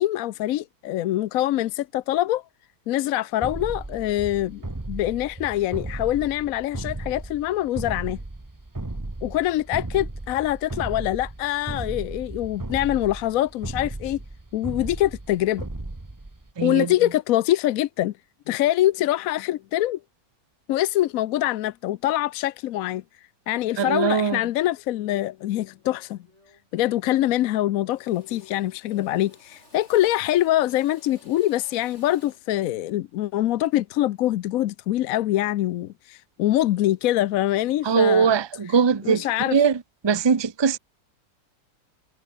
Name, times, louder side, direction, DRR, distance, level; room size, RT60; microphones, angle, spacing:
voice 1, 0.0-2.4 2.9-8.2 9.2-14.2 14.5-15.7 16.6-18.1 18.5-20.0 20.7-23.0 23.5-26.2 26.7-38.3 39.0-39.6, left 14 dB, 70° left, 0.9 m, -24 dB
sound 1, 3.4-16.5, right 2 dB, 10° right, 1.2 m, -35 dB
voice 2, 16.6-16.9 23.8-24.4 37.8-39.3 39.5-39.8 40.0-40.8, right 6 dB, 30° right, 0.4 m, -21 dB
Drill, 25.6-25.8 26.2-26.8 27.0-27.6 27.9-32.5, left 1 dB, 40° left, 7.1 m, -55 dB
omnidirectional pair, 1.8 m